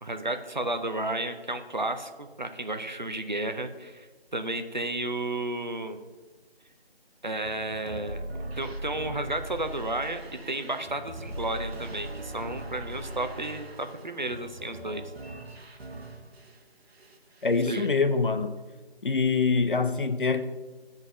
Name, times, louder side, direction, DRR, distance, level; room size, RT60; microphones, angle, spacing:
voice 1, 0.0-6.0 7.2-8.2 8.6-15.0 17.7-17.9, right 2 dB, 45° right, 8 dB, 0.6 m, -32 dB
sound 1, 7.4-16.6 16.9-17.7, right 1 dB, 75° right, 1.1 m, -40 dB
voice 2, 17.4-18.6 19.0-20.4, left 4 dB, 55° left, 10 dB, 0.6 m, -25 dB
7.9 x 4.0 x 6.1 m, 1.3 s
figure-of-eight pair, 180°, 32 cm